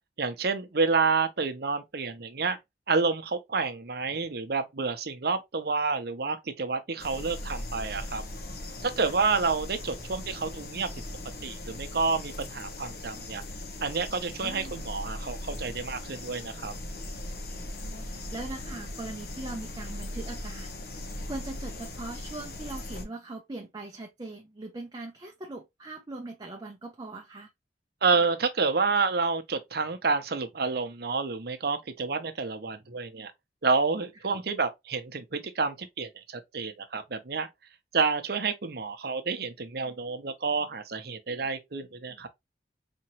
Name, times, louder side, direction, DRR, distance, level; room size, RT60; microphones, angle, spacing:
voice 1, 0.2-2.6 2.9-8.2 8.8-10.9 11.4-13.4 13.8-16.7 28.0-33.3 33.6-37.5 37.9-42.3, right 4 dB, 60° right, 0.8 m, -29 dB
sound 1, 7.0-23.0, left 1 dB, 60° left, 0.9 m, -39 dB
voice 2, 14.4-14.8 17.5-27.5, right 2 dB, 25° right, 0.6 m, -41 dB
4.3 x 2.9 x 2.9 m
head